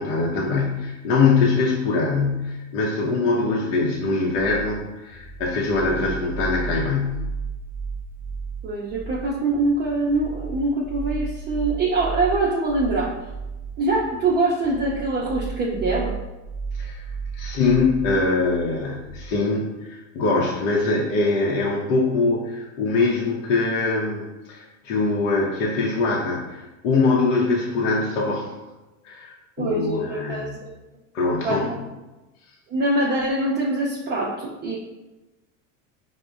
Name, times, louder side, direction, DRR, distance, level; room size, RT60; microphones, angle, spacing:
voice 1, 0.0-7.3 16.7-17.0 17.3-28.5 29.0-30.6 31.1-31.7, left 3 dB, 75° left, -3 dB, 0.7 m, -23 dB
sound 1, 4.3-19.3, right 5 dB, 40° left, 0.4 m, -34 dB
voice 2, 8.6-13.1 13.8-16.1 29.6-30.5 31.4-31.8 32.7-34.8, right 2 dB, 30° right, -4 dB, 0.4 m, -24 dB
4.9 x 2.1 x 2.3 m, 1.1 s
supercardioid pair, 115°, 38 cm